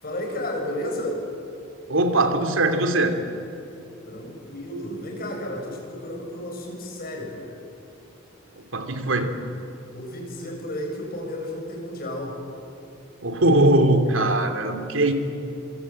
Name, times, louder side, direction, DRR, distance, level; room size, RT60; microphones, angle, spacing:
voice 1, 0.0-1.2 4.1-7.5 9.9-12.4, left 1 dB, 50° left, 0 dB, 7.2 m, -32 dB
voice 2, 1.9-3.2 8.7-9.3 13.2-15.1, right 1 dB, 90° right, 7 dB, 2.9 m, -20 dB
26.0 x 25.0 x 8.7 m, 2.8 s
head